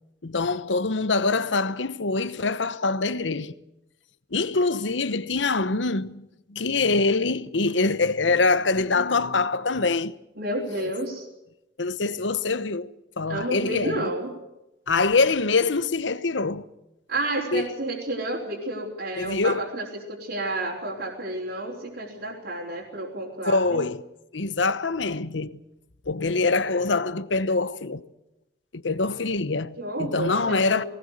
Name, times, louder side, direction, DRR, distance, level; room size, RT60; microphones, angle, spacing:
voice 1, 0.2-3.5 4.3-10.1 11.8-12.9 13.2-14.1 14.9-16.7 17.5-17.7 19.2-19.7 23.5-24.0 24.3-25.6 26.1-28.1 28.7-30.8, left 3 dB, 80° left, 1.0 m, -24 dB
voice 2, 10.4-11.3 13.3-14.3 17.1-23.9 29.8-30.9, right 1 dB, 65° right, 4.2 m, -30 dB
20.5 x 18.5 x 8.2 m
head